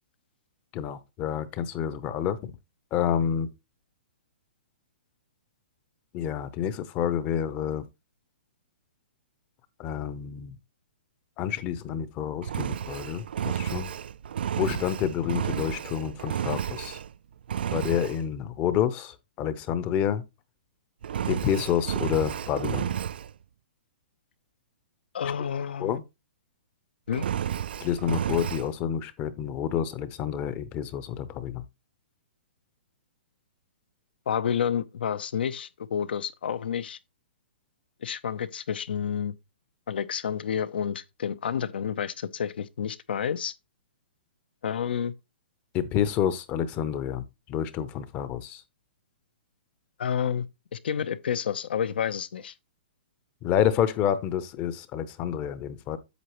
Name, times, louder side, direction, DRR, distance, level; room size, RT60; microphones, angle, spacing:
voice 1, 0.7-2.5 2.9-3.5 6.1-7.8 9.8-10.6 11.4-13.9 14.6-17.0 17.7-20.2 21.3-22.9 25.8-26.0 27.8-31.6 45.7-47.2 47.5-48.6 53.4-56.0, left 9 dB, 25° left, 0.7 m, -28 dB
Engine, 12.4-17.1 17.5-18.2 21.0-23.3 27.1-28.7, right 9 dB, 70° right, 0.3 m, -31 dB
voice 2, 25.1-26.0 27.1-27.2 34.3-37.0 38.0-39.3 39.9-43.5 44.6-45.1 50.0-50.5 50.7-52.5, left 8 dB, 70° left, 0.8 m, -29 dB
8.2 x 7.2 x 3.0 m
hypercardioid pair, 150°, 6 cm